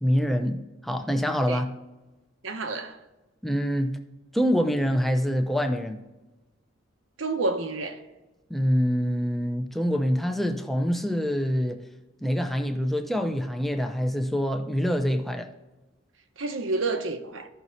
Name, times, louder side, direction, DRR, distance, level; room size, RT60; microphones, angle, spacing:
voice 1, 0.0-1.7 3.4-4.0 4.3-6.0 8.5-11.8 12.2-15.5, equal, ahead, 0.6 m, -25 dB
voice 2, 2.4-3.0 7.2-8.0 16.4-17.5, right 3 dB, 85° right, 1.0 m, -29 dB
15.0 x 6.1 x 2.7 m
head